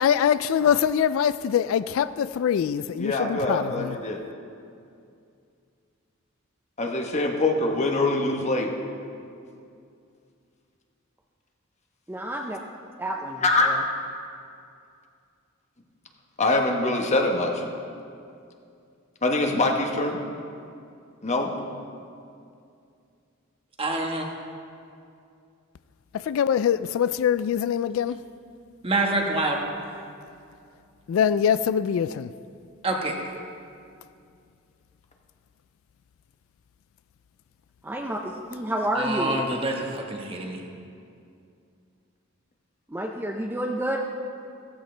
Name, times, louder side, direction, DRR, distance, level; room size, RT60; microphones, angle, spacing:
voice 1, 0.0-4.0 26.1-28.2 31.1-32.3, left 8 dB, 70° left, 0.3 m, -23 dB
voice 2, 3.0-4.2 6.8-8.7 13.4-13.7 16.4-17.6 19.2-20.2 21.2-21.5, left 2 dB, 35° left, 1.2 m, -24 dB
voice 3, 12.1-12.6 13.0-13.8 37.8-39.4 42.9-44.0, right 1 dB, 10° right, 0.6 m, -29 dB
voice 4, 23.8-24.3 28.8-29.6 32.8-33.1 39.0-40.6, right 2 dB, 25° right, 1.4 m, -26 dB
15.5 x 14.5 x 3.3 m
head